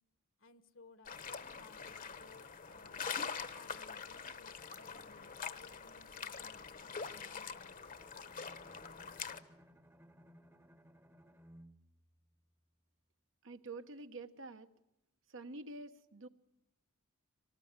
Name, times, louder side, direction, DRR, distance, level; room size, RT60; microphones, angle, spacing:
voice 1, 0.4-3.1 3.5-7.8, left 3 dB, 65° left, 11 dB, 1.5 m, -61 dB
sound 1, 1.1-9.4, left 6 dB, 40° left, 1.1 m, -44 dB
Bowed string instrument, 8.0-13.0, equal, 10° right, 1.0 m, -62 dB
voice 2, 13.4-14.7 15.3-16.3, right 3 dB, 65° right, 8 dB, 1.2 m, -47 dB
25.0 x 19.0 x 9.6 m, 0.88 s
head